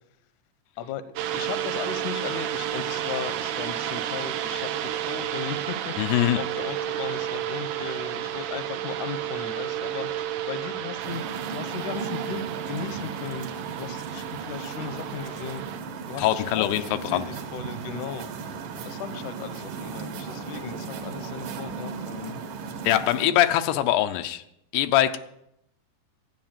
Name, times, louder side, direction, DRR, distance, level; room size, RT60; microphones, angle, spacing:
sound 1, 1.2-15.8, right 11 dB, 80° right, 1.8 m, -31 dB
voice 1, 1.3-5.9 6.3-13.5 13.8-15.6 16.1-17.2 17.5-18.5 18.8-22.4 22.7-22.9, left 7 dB, 70° left, 11 dB, 1.9 m, -37 dB
voice 2, 6.0-6.4 16.2-17.3 22.8-24.4 24.7-25.2, left 13 dB, 90° left, 9 dB, 2.8 m, -23 dB
sound 2, 11.0-23.3, right 5 dB, 65° right, 2.6 m, -36 dB
13.5 x 9.4 x 7.3 m, 0.81 s
omnidirectional pair, 4.6 m